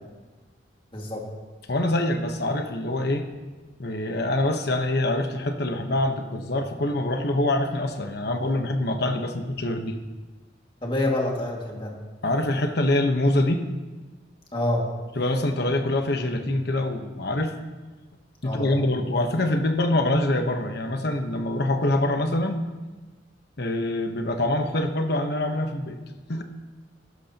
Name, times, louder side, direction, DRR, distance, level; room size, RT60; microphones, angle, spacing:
voice 1, 0.9-1.3 10.8-11.9 14.5-14.9 18.4-18.9, left 1 dB, 25° left, -2 dB, 2.1 m, -27 dB
voice 2, 1.7-3.3 3.8-10.0 12.2-13.6 15.2-17.5 18.4-22.7 23.6-26.0 26.3-26.4, left 1 dB, 55° left, 6 dB, 1.1 m, -25 dB
15.5 x 12.5 x 2.9 m, 1.3 s
head